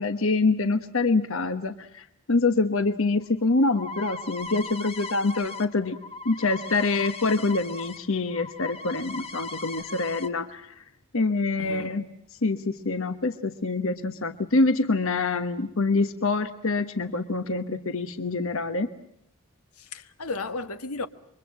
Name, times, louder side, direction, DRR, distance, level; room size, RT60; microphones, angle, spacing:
voice 1, 0.0-6.0 6.2-10.8 11.1-12.0 12.4-18.9, left 3 dB, 65° left, 1.2 m, -25 dB
sound 1, 3.2-8.0 8.3-10.3, left 3 dB, 25° left, 1.4 m, -38 dB
voice 2, 11.6-11.9 19.8-21.1, left 3 dB, 85° left, 1.5 m, -34 dB
28.5 x 24.0 x 7.5 m
head